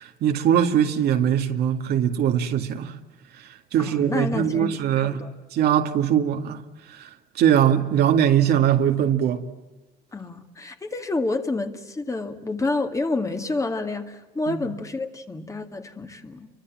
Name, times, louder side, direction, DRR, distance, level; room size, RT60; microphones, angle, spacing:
voice 1, 0.0-2.9 3.7-5.2 5.5-6.6 6.9-7.1 7.4-9.4 14.5-14.6, right 9 dB, 70° right, 2.2 m, -21 dB
voice 2, 3.8-5.3 10.1-16.5, left 3 dB, 20° left, 2.2 m, -29 dB
29.5 x 24.5 x 7.4 m
cardioid pair, 110°, 17 cm